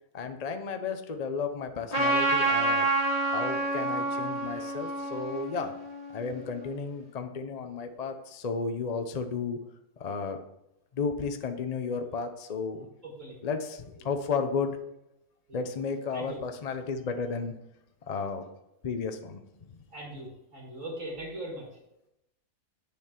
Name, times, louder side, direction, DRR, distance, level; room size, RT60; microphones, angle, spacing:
voice 1, 0.1-2.9 3.3-5.7 6.1-9.6 10.0-10.4 10.9-12.9 13.4-14.8 15.5-17.5 18.1-18.4 18.8-19.4, left 5 dB, 45° left, 7 dB, 0.5 m, -33 dB
Trumpet, 1.9-6.6, right 2 dB, 25° left, 1.7 m, -28 dB
voice 2, 13.0-13.4 14.0-14.1 15.5-15.6 16.1-16.4 19.9-21.7, right 1 dB, 55° right, -4 dB, 2.6 m, -40 dB
8.5 x 6.8 x 4.5 m, 0.86 s
omnidirectional pair, 1.6 m